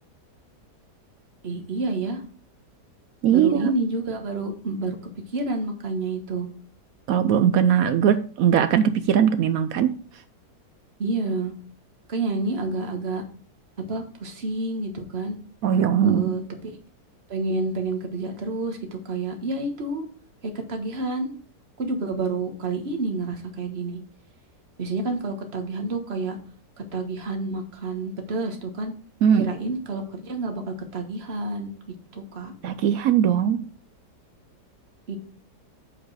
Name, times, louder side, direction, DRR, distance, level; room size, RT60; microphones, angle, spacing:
voice 1, 1.4-2.2 3.3-5.0 5.3-6.5 11.0-11.5 12.1-13.2 13.9-15.4 16.0-16.7 17.3-20.1 20.7-21.3 21.8-24.0 24.8-26.4 26.9-28.9 29.4-31.7 32.1-32.5 35.1-35.2, right 3 dB, 40° right, 4 dB, 1.5 m, -29 dB
voice 2, 3.2-3.7 7.1-10.0 15.6-16.4 29.2-29.5 32.6-33.6, right 8 dB, 70° right, 11 dB, 0.8 m, -20 dB
7.8 x 4.6 x 4.8 m, 0.43 s
omnidirectional pair, 1.8 m